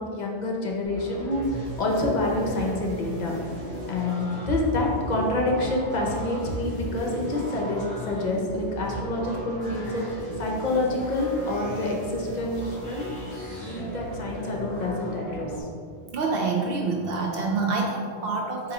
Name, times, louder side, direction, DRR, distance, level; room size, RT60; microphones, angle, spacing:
voice 1, 0.0-3.3 3.9-13.1 13.6-15.5, left 2 dB, 50° left, -1 dB, 0.7 m, -27 dB
sound 1, 0.8-15.6, equal, 15° left, 1.3 m, -36 dB
voice 2, 16.0-18.7, right 3 dB, 65° right, -1 dB, 0.7 m, -27 dB
4.0 x 2.9 x 3.9 m, 2.2 s
omnidirectional pair, 1.1 m